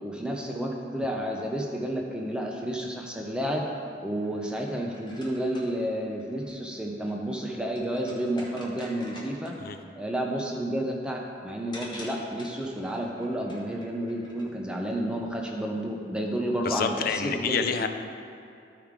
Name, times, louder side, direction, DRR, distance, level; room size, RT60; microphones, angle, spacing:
voice 1, 0.0-3.6 4.0-9.5 9.9-17.9, right 1 dB, 5° right, 0 dB, 0.6 m, -31 dB
sound 1, 4.2-9.7 11.2-11.3 11.7-14.4, left 1 dB, 25° left, 1.0 m, -48 dB
voice 2, 16.6-17.9, left 5 dB, 50° left, 8 dB, 0.4 m, -28 dB
13.5 x 4.7 x 3.7 m, 2.6 s
head